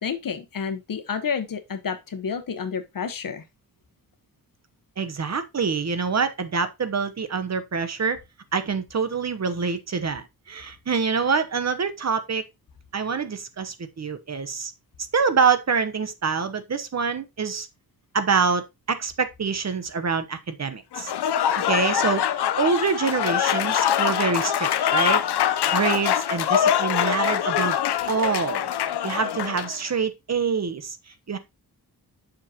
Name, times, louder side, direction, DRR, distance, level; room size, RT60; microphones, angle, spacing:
voice 1, 0.0-3.4, left 6 dB, 60° left, 1.2 m, -30 dB
voice 2, 5.0-8.2 8.5-12.4 12.9-14.7 15.1-17.7 18.1-21.1 21.7-22.3 22.6-25.2 25.7-27.8 28.1-28.7 29.0-31.0 31.3-31.4, right 5 dB, 40° right, 0.9 m, -25 dB
Applause / Crowd, 20.9-29.8, left 10 dB, 85° left, 0.7 m, -24 dB
7.4 x 6.4 x 2.9 m
wide cardioid pair, 115°, 39 cm